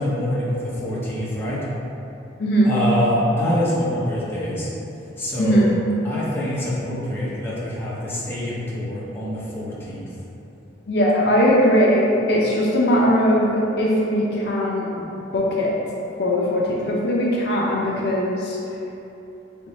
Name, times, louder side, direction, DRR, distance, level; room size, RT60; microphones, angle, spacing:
voice 1, 0.0-1.6 2.6-4.7 5.2-5.7 6.0-10.1, left 1 dB, 10° left, -8 dB, 0.7 m, -25 dB
voice 2, 2.4-2.7 5.4-5.7 10.9-15.7 16.2-18.6, equal, 60° left, -4 dB, 0.5 m, -20 dB
3.5 x 3.1 x 4.0 m, 3.0 s
head